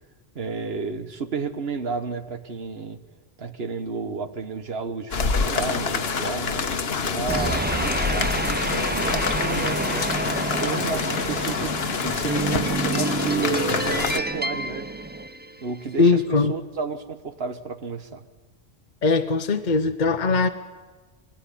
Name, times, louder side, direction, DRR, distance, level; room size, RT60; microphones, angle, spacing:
voice 1, 0.3-3.0 3.4-6.7 7.0-8.6 8.9-10.1 10.5-14.9 15.6-18.2, right 5 dB, 75° right, 10 dB, 1.5 m, -32 dB
sound 1, 5.1-14.2, left 5 dB, 75° left, 1.4 m, -26 dB
sound 2, 7.3-15.8, right 2 dB, 10° right, 0.6 m, -28 dB
voice 2, 16.0-16.5 19.0-20.5, left 4 dB, 50° left, 7 dB, 1.0 m, -20 dB
20.5 x 17.0 x 9.9 m, 1.3 s
omnidirectional pair, 1.0 m